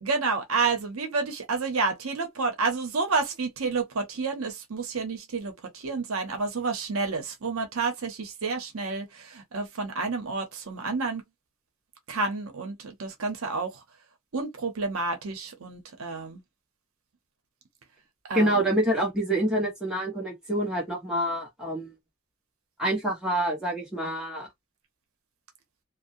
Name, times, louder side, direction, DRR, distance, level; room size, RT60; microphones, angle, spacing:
voice 1, 0.0-11.2 12.1-13.7 14.3-16.4 18.3-18.7, right 4 dB, 85° right, 0.8 m, -30 dB
voice 2, 18.3-21.9 22.8-24.5, right 1 dB, 5° right, 1.1 m, -27 dB
2.6 x 2.0 x 2.6 m
head